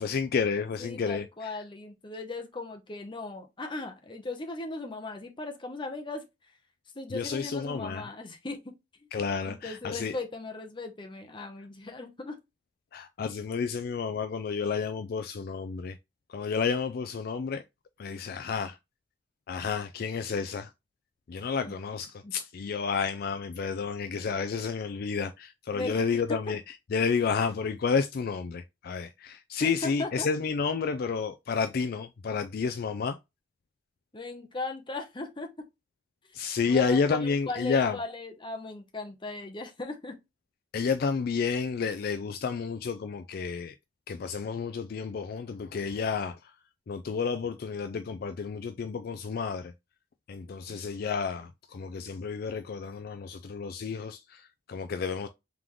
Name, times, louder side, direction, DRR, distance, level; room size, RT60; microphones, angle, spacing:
voice 1, 0.0-1.2 7.1-8.0 9.1-10.2 12.9-16.0 16.3-17.6 18.0-18.8 19.5-20.7 21.3-26.6 26.9-33.2 36.3-38.0 40.7-43.8 44.1-46.5 46.9-49.7 50.3-55.3, left 5 dB, 55° left, 0.4 m, -30 dB
voice 2, 0.8-6.5 6.9-8.7 9.0-9.1 9.4-12.4 21.7-21.8 22.2-22.3 25.7-26.4 29.6-30.3 34.1-35.6 36.7-40.2, left 2 dB, 25° left, 0.8 m, -38 dB
3.7 x 3.5 x 3.0 m
head